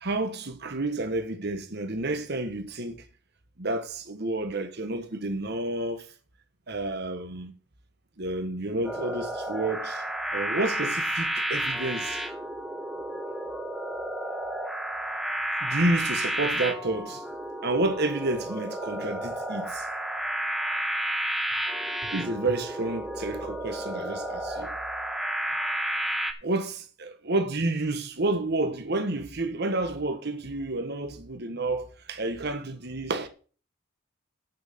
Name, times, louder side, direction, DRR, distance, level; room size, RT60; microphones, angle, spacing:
voice 1, 0.0-3.0 3.6-6.0 6.7-7.5 8.2-10.0 10.3-12.2 15.6-17.2 17.6-19.8 22.1-24.7 26.4-33.3, right 2 dB, 55° right, 1.5 m, -30 dB
sound 1, 8.8-26.3, right 1 dB, ahead, 1.4 m, -31 dB
9.2 x 6.0 x 6.8 m
head